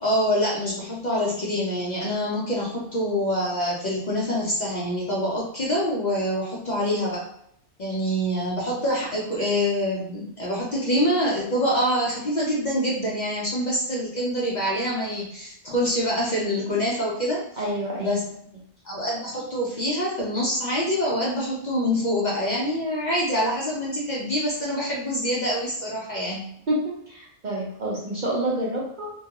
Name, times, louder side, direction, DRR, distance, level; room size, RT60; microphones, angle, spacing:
voice 1, 0.0-7.2 7.8-17.6 18.0-18.2 18.8-26.4, equal, 50° left, -5 dB, 0.5 m, -25 dB
voice 2, 17.6-18.2 26.7-29.1, right 1 dB, 55° right, -4 dB, 0.6 m, -28 dB
2.2 x 2.2 x 2.8 m, 0.71 s
omnidirectional pair, 1.2 m